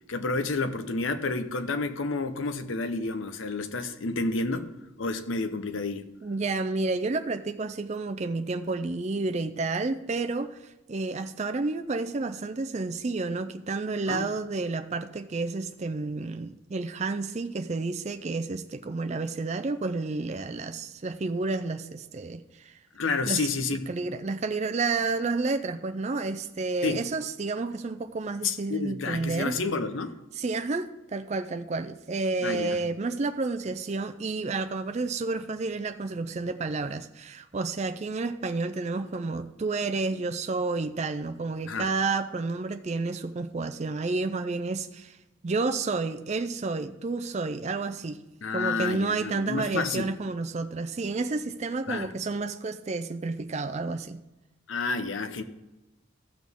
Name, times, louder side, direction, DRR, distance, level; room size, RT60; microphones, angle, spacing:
voice 1, 0.1-4.7 5.0-6.0 14.1-14.3 22.9-23.8 26.8-27.0 28.4-30.1 32.4-32.9 41.7-41.9 48.4-50.1 51.9-52.1 54.7-55.4, left 3 dB, 70° left, 0.8 m, -30 dB
voice 2, 6.2-22.7 23.3-29.6 30.4-45.2 45.4-48.2 48.5-54.2, right 3 dB, 35° right, 0.4 m, -30 dB
15.0 x 6.2 x 3.6 m
head